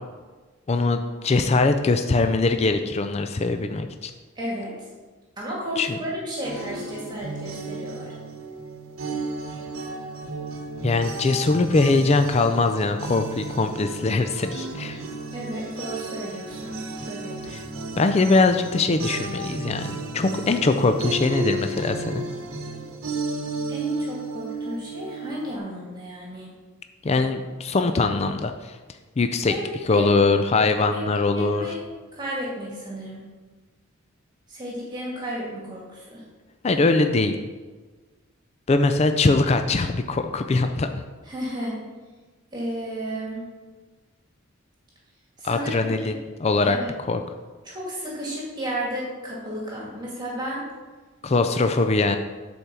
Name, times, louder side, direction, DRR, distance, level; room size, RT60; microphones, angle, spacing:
voice 1, 0.7-4.1 5.8-6.0 10.8-15.0 17.5-17.6 18.0-22.2 27.0-28.8 29.2-29.5 29.8-31.7 36.6-37.4 38.7-40.9 45.4-46.8 47.1-47.2 51.2-52.2, left 3 dB, 30° left, 7 dB, 0.4 m, -22 dB
voice 2, 4.4-4.7 5.4-8.1 15.3-16.8 17.0-17.4 23.7-26.5 29.5-30.1 30.9-31.0 31.3-31.8 32.1-33.2 34.5-36.2 41.3-41.8 42.5-43.4 45.4-46.1 46.6-46.9 47.7-50.6, equal, 20° right, -5 dB, 2.1 m, -33 dB
sound 1, 6.4-25.6, right 2 dB, 75° right, 1.0 m, -33 dB
8.2 x 4.4 x 6.8 m, 1.3 s
head